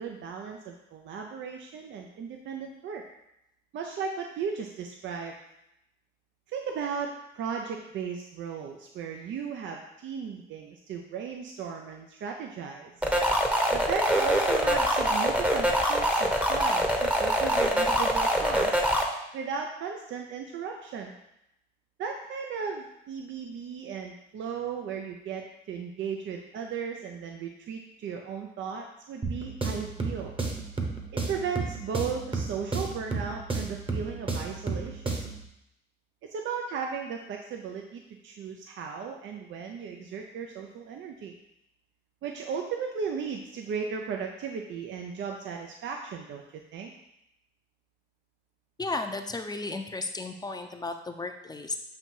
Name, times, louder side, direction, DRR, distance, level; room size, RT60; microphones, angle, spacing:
voice 1, 0.0-3.0 3.7-5.3 6.5-13.1 13.7-18.8 19.3-21.1 22.0-30.3 31.3-35.2 36.2-41.3 42.2-46.4 46.7-46.9, right 6 dB, 70° right, 3 dB, 0.6 m, -36 dB
sound 1, 13.0-19.0, equal, 5° right, 0.8 m, -24 dB
sound 2, 29.2-35.4, right 3 dB, 25° right, 1.0 m, -33 dB
voice 2, 48.8-51.8, left 3 dB, 20° left, 6 dB, 0.5 m, -34 dB
7.6 x 2.7 x 4.5 m, 0.83 s
cardioid pair, 90°, 20 cm